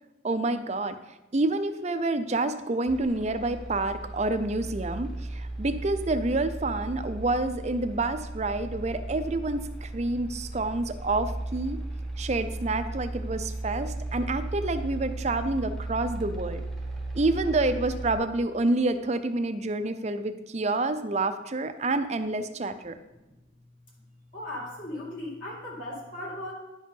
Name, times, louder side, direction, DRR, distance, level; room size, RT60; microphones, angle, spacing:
voice 1, 0.2-1.0 1.3-11.8 12.2-16.6 17.1-23.0, right 2 dB, 35° right, 10 dB, 0.5 m, -28 dB
sound 1, 2.9-18.2, right 2 dB, ahead, 1.1 m, -36 dB
voice 2, 23.0-23.3 24.3-26.5, left 1 dB, 45° left, -4 dB, 2.4 m, -37 dB
10.5 x 5.1 x 5.4 m, 1.0 s
head